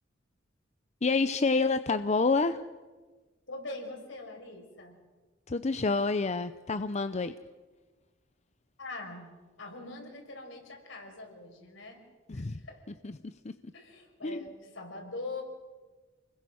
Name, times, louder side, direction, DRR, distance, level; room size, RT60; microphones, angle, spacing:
voice 1, 1.0-2.6 5.5-7.3 12.3-12.6 13.0-13.2 13.4-13.5 14.2-14.4, left 3 dB, 35° left, 11 dB, 0.6 m, -28 dB
voice 2, 3.5-5.0 8.8-9.3 9.6-12.0 12.3-12.9 13.7-15.4, left 2 dB, 75° left, 2 dB, 6.0 m, -43 dB
29.0 x 21.0 x 6.4 m, 1.3 s
head